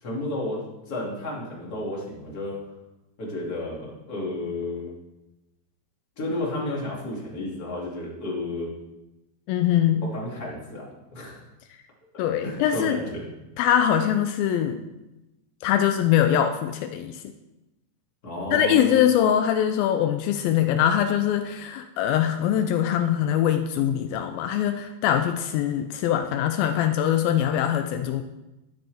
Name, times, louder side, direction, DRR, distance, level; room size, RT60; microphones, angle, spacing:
voice 1, 0.0-0.6 0.9-2.6 3.2-4.9 6.2-8.7 10.0-10.8 11.1-11.4 12.4-13.2 18.2-18.9, left 1 dB, 25° left, -4 dB, 2.9 m, -32 dB
voice 2, 9.5-10.1 12.2-13.0 13.6-14.8 15.6-17.2 18.5-28.2, left 10 dB, 85° left, 7 dB, 2.4 m, -22 dB
11.5 x 10.5 x 3.5 m, 0.99 s
omnidirectional pair, 4.2 m